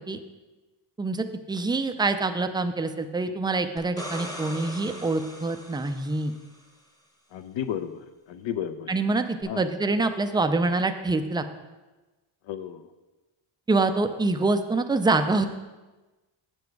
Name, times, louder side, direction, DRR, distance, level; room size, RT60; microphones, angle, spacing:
voice 1, 1.0-6.3 8.9-11.4 13.7-15.5, right 3 dB, 10° right, 7 dB, 0.3 m, -25 dB
sound 1, 3.8-6.6 9.4-9.5, equal, 5° left, 0.9 m, -40 dB
voice 2, 7.3-8.0 8.3-8.9 9.5-9.6 12.5-12.8, left 9 dB, 65° left, 11 dB, 0.7 m, -32 dB
7.6 x 7.1 x 4.6 m, 1.1 s
cardioid pair, 120°, 50 cm